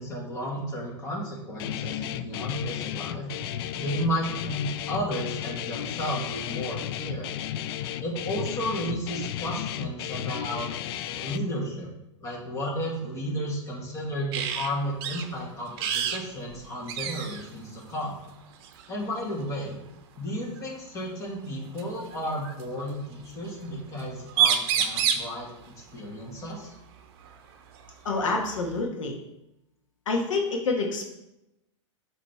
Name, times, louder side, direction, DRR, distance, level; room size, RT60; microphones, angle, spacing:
voice 1, 0.0-3.3 3.7-7.3 8.0-10.7 11.1-11.9 12.2-18.2 18.9-19.8 20.2-25.5 25.9-26.8, equal, 20° left, -3 dB, 1.9 m, -33 dB
Guitar, 1.6-11.4, left 11 dB, 50° left, 0.4 m, -33 dB
sound 1, 14.3-14.7 15.0-15.3 15.8-16.2 16.5-16.6 16.9-17.5 18.6-18.9 20.6-20.7 21.8-22.6 24.0-24.1 24.3-25.3 27.3-27.4 27.8-28.8, right 9 dB, 50° right, 0.8 m, -27 dB
voice 2, 28.0-29.1 30.1-31.1, left 3 dB, 80° left, 0 dB, 1.4 m, -27 dB
7.3 x 3.3 x 4.3 m, 0.87 s
hypercardioid pair, 130°, 16 cm